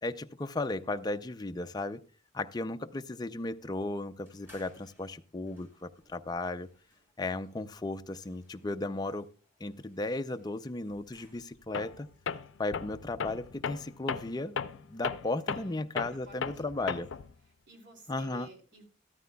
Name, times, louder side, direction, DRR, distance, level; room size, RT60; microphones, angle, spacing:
voice 1, 0.0-2.0 2.3-6.7 7.2-9.3 9.6-12.1 12.6-17.1 18.1-18.5, left 2 dB, 20° left, 8 dB, 0.5 m, -35 dB
sound 1, 4.3-11.8, left 1 dB, 10° right, 4.6 m, -63 dB
Tools, 11.7-12.0 12.3-17.3, left 6 dB, 80° left, 0.5 m, -36 dB
voice 2, 15.5-15.8 16.3-16.5 16.8-17.2 17.7-18.8, right 2 dB, 65° right, 3 dB, 2.8 m, -53 dB
13.5 x 13.5 x 2.3 m, 0.37 s
head